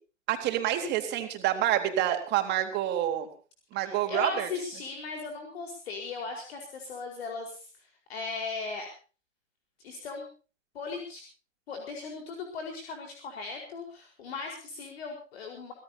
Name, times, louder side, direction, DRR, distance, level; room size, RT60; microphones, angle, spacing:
voice 1, 0.3-3.3 3.7-4.5, right 12 dB, 30° right, 4 dB, 3.9 m, -28 dB
voice 2, 3.8-8.9 9.8-10.3 10.7-11.2 11.7-15.7, left 4 dB, 55° left, 2 dB, 4.8 m, -38 dB
25.5 x 17.5 x 2.9 m, 0.38 s
figure-of-eight pair, 115°, 37 cm